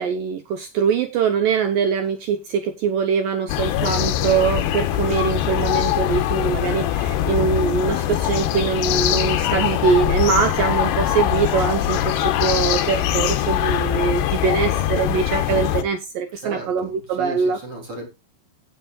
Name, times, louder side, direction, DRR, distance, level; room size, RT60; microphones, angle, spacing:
voice 1, 0.0-17.6, right 6 dB, 80° right, 1.9 m, -23 dB
sound 1, 3.5-15.8, left 11 dB, 70° left, 3.0 m, -22 dB
voice 2, 16.4-18.1, right 1 dB, 30° right, 3.6 m, -35 dB
17.5 x 7.0 x 2.4 m
omnidirectional pair, 5.5 m